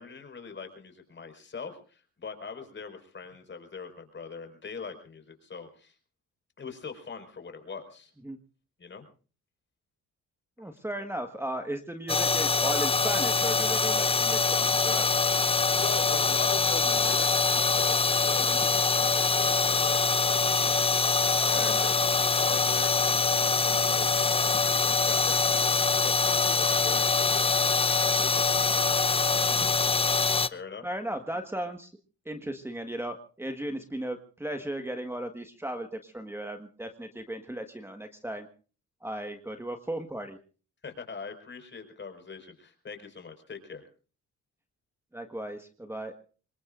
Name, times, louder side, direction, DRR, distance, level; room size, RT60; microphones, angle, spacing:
voice 1, 0.0-5.9 6.6-8.1 8.8-9.0 15.8-20.9 21.4-21.9 22.4-29.3 30.5-30.9 40.8-43.8, left 5 dB, 40° left, 6 dB, 5.1 m, -42 dB
voice 2, 10.6-15.1 18.4-18.6 21.4-21.9 29.5-29.6 30.8-31.9 32.2-38.5 39.0-40.4 45.1-46.1, right 1 dB, 10° right, 6 dB, 1.6 m, -36 dB
sound 1, 12.1-30.5, left 4 dB, 20° left, 0.7 m, -24 dB
26.0 x 22.0 x 2.6 m, 0.38 s
cardioid pair, 90°, 30 cm